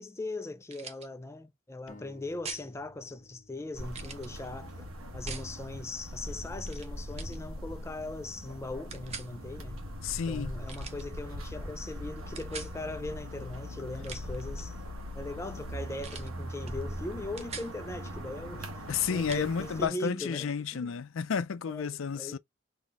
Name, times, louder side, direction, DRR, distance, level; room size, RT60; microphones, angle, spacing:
voice 1, 0.0-9.8 10.3-14.8 15.1-20.9 21.6-22.4, left 2 dB, 15° left, 0.3 m, -40 dB
sound 1, 0.7-1.1 2.4-2.7 3.9-4.3 5.3-5.5 6.6-6.9 7.2-7.4 8.9-9.3 10.7-11.1 12.4-12.7 13.9-14.4 16.0-16.3 16.7-16.8 17.1-17.7 19.3-19.5, right 5 dB, 30° right, 0.6 m, -43 dB
sound 2, 1.9-5.5, left 2 dB, 40° left, 0.7 m, -56 dB
sound 3, 3.7-19.9, equal, 85° right, 1.1 m, -41 dB
voice 2, 10.0-10.6 18.9-22.4, left 6 dB, 75° left, 0.4 m, -31 dB
4.0 x 2.8 x 3.5 m
head